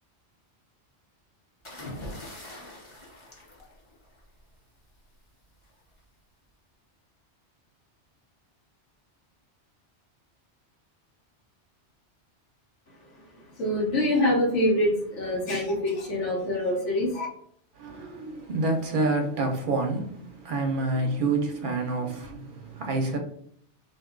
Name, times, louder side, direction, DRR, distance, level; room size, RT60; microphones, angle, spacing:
sound 1, 1.6-4.4 5.6-5.9, left 1 dB, 30° left, 0.7 m, -42 dB
voice 1, 13.6-17.3, left 1 dB, 85° left, 1.2 m, -25 dB
voice 2, 17.8-23.2, right 2 dB, 55° right, 0.7 m, -28 dB
2.6 x 2.2 x 3.7 m
omnidirectional pair, 1.2 m